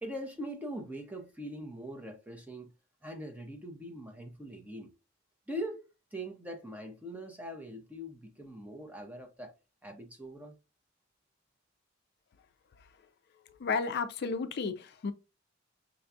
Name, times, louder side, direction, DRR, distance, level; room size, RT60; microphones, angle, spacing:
voice 1, 0.0-2.7 3.0-4.9 5.5-9.5 9.8-10.6, equal, 10° right, 0.7 m, -42 dB
voice 2, 13.6-15.1, left 4 dB, 55° left, 0.4 m, -32 dB
5.7 x 2.3 x 2.6 m
head